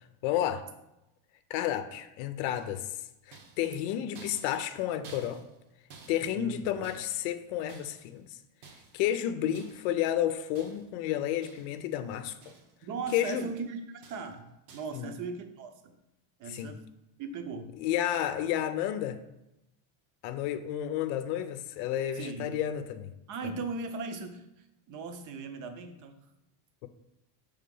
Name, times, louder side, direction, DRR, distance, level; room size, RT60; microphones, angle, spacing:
voice 1, 0.2-0.7 1.5-3.0 3.3-5.4 6.1-8.4 8.9-12.5 13.1-13.5 14.9-15.1 16.5-16.8 17.8-19.2 20.2-23.1 26.8-26.9, left 11 dB, 90° left, 0.6 m, -31 dB
sound 1, 2.5-2.9 3.3-7.3 7.7-8.2 8.6-9.1 9.5-10.0 10.6-11.0 11.4-11.9 12.2-12.9 13.3-13.7 14.0-14.4 14.7-15.0, right 4 dB, 75° right, 1.3 m, -54 dB
voice 2, 6.3-6.9 12.8-15.9 16.4-16.8 17.2-17.7 22.1-22.6 23.3-26.2, right 4 dB, 45° right, 0.7 m, -38 dB
5.4 x 3.6 x 5.3 m
cardioid pair, 160°, 45 cm